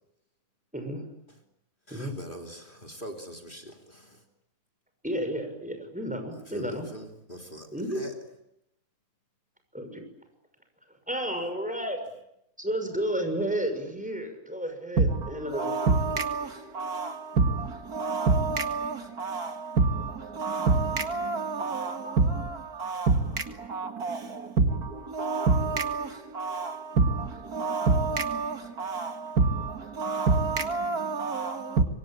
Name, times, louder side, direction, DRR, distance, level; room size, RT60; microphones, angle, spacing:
voice 1, 1.9-4.2 6.4-8.2, equal, 30° left, 3.3 m, -43 dB
voice 2, 5.0-6.9 7.7-8.0 9.7-10.0 11.1-12.0 12.6-15.8 21.6-22.2, right 1 dB, 5° right, 6.2 m, -32 dB
voice 3, 15.0-31.8, right 4 dB, 75° right, 2.5 m, -27 dB
27.0 x 24.5 x 8.9 m
omnidirectional pair, 1.6 m